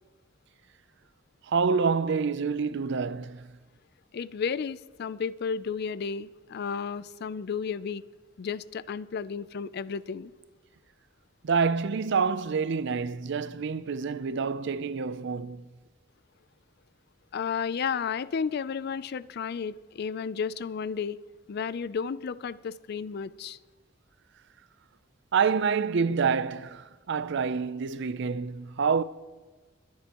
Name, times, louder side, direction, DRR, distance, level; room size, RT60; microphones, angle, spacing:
voice 1, 1.5-3.5 11.4-15.7 25.3-29.0, right 5 dB, 65° right, 0.5 m, -27 dB
voice 2, 4.1-8.0 8.4-10.3 17.3-21.2 21.5-23.6, left 6 dB, 55° left, 0.4 m, -32 dB
21.0 x 10.5 x 3.0 m
head